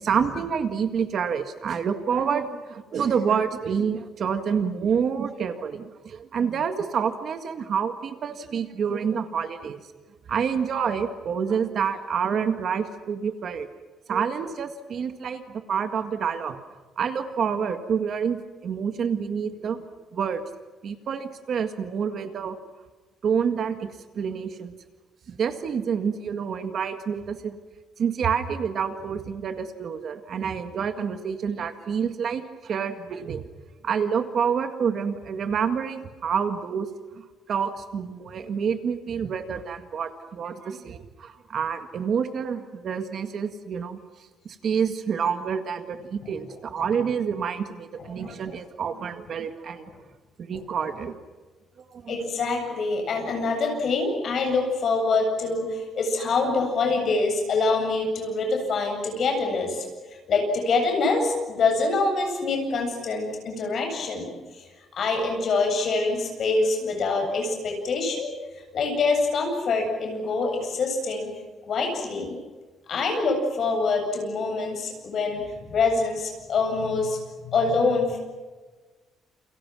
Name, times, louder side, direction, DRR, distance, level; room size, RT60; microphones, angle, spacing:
voice 1, 0.0-9.8 10.3-13.7 14.1-16.6 17.0-19.9 20.1-20.4 20.8-22.6 23.2-23.9 24.2-24.7 25.4-27.6 28.0-33.5 33.8-36.9 37.1-44.0 44.5-49.9 50.4-51.2 51.9-52.2, right 7 dB, 40° right, 7 dB, 1.8 m, -28 dB
voice 2, 48.0-48.4 49.9-50.0 52.1-59.8 60.3-64.7 64.9-68.3 68.6-71.3 71.7-72.4 72.9-78.2, left 3 dB, 40° left, 3 dB, 8.0 m, -25 dB
29.5 x 29.0 x 6.3 m, 1.3 s
cardioid pair, 180°, 0 cm